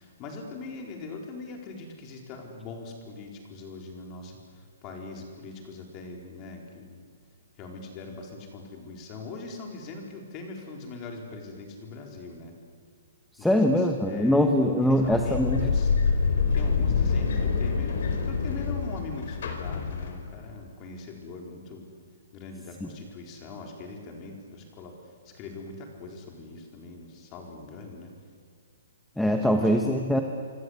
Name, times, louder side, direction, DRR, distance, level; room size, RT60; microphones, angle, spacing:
voice 1, 0.0-7.0 7.6-12.5 13.4-15.9 16.5-21.9 22.3-24.9 25.2-28.1 29.5-29.6, left 3 dB, 20° left, 1 dB, 4.3 m, -42 dB
voice 2, 13.4-15.7 22.8-22.9 29.2-30.2, equal, ahead, 4 dB, 1.1 m, -23 dB
sound 1, 14.9-20.5, left 5 dB, 55° left, 4.7 m, -26 dB
27.0 x 24.5 x 8.2 m, 2.1 s
hypercardioid pair, 175°, 0 cm